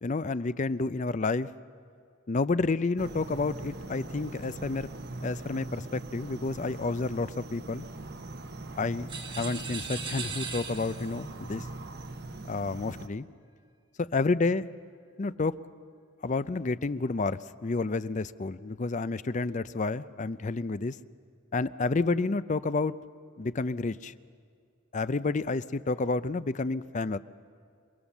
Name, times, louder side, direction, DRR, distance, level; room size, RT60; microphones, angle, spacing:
voice 1, 0.0-1.5 2.3-4.9 5.2-7.9 8.8-11.7 12.5-13.3 14.0-14.7 15.2-15.6 16.2-21.0 21.5-22.9 23.4-24.1 24.9-27.2, left 3 dB, 35° left, 15 dB, 0.5 m, -30 dB
sound 1, 3.0-13.1, right 2 dB, 50° right, 1.0 m, -41 dB
sound 2, 9.1-11.2, right 5 dB, 25° right, 1.2 m, -38 dB
28.0 x 21.0 x 7.2 m, 2.3 s
head